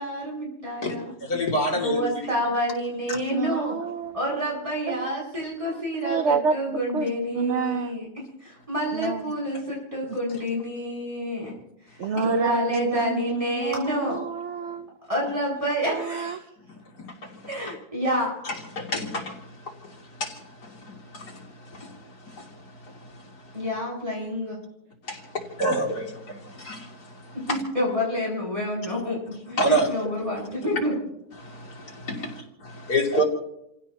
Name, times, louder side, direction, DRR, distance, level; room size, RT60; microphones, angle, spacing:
voice 1, 0.0-1.1 1.7-3.7 4.1-8.1 8.4-11.5 12.1-14.2 15.1-16.4 17.5-18.3 23.5-24.6 27.7-30.9, equal, 20° right, 7.9 m, -28 dB
voice 2, 1.2-2.1 12.2-12.3 17.0-17.4 18.4-23.5 25.1-27.6 29.6-29.9 31.4-33.2, equal, 85° left, 3.5 m, -29 dB
voice 3, 3.3-4.2 4.9-5.2 5.7-6.6 6.9-7.9 8.9-9.2 12.0-14.9 15.9-16.4, right 6 dB, 55° right, 1.0 m, -29 dB
29.5 x 15.5 x 3.0 m
omnidirectional pair, 1.7 m